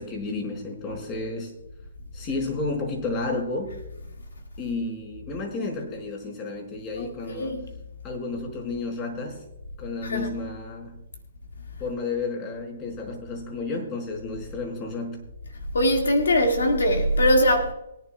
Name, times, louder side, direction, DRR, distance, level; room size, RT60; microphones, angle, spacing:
voice 1, 0.0-1.5 2.1-3.8 4.6-7.7 8.0-9.4 9.8-11.0 11.8-15.2, left 3 dB, 25° left, 4.7 m, -32 dB
voice 2, 7.0-7.6 10.0-10.3 15.7-17.7, equal, 90° left, 1.8 m, -21 dB
22.5 x 11.0 x 2.2 m
hypercardioid pair, 150°, 0 cm